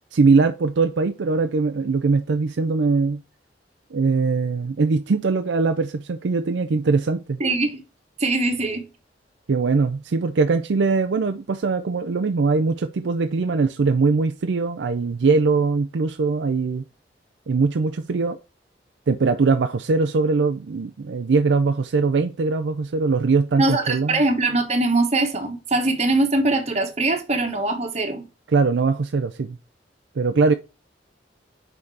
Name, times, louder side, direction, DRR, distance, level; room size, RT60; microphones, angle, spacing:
voice 1, 0.1-3.2 3.9-7.4 9.5-16.8 17.5-18.4 19.1-24.2 28.5-29.6 30.2-30.5, right 4 dB, 80° right, 0.5 m, -21 dB
voice 2, 7.4-7.8 8.2-8.8 23.6-28.2, right 2 dB, 35° right, 1.2 m, -22 dB
5.8 x 4.0 x 4.7 m
head